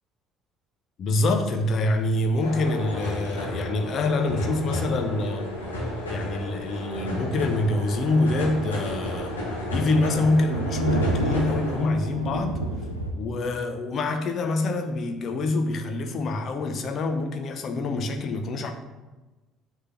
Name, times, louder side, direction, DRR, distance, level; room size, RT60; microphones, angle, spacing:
voice 1, 1.0-5.5 6.1-9.4 9.7-12.6 13.1-18.7, left 2 dB, 45° left, 0.8 m, -26 dB
sound 1, 2.4-11.8, left 1 dB, 80° left, 1.4 m, -32 dB
Thunder, 6.1-6.3 6.7-6.8 7.1-7.2 7.6-7.7 7.9-13.1, right 1 dB, 90° right, 0.5 m, -31 dB
6.7 x 3.7 x 5.9 m
figure-of-eight pair, 55°, 0 cm